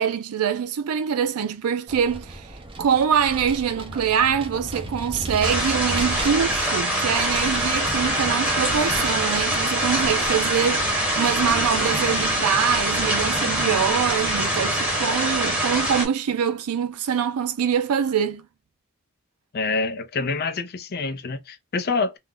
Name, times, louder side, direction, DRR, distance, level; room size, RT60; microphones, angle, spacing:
voice 1, 0.0-2.5 2.8-18.5, right 7 dB, 90° right, 0.4 m, -24 dB
Vehicle, 1.9-15.1, right 1 dB, 25° right, 0.6 m, -37 dB
sound 1, 5.4-16.1, right 1 dB, 5° right, 0.9 m, -24 dB
voice 2, 19.5-22.2, left 4 dB, 45° left, 0.5 m, -26 dB
2.4 x 2.0 x 3.5 m
head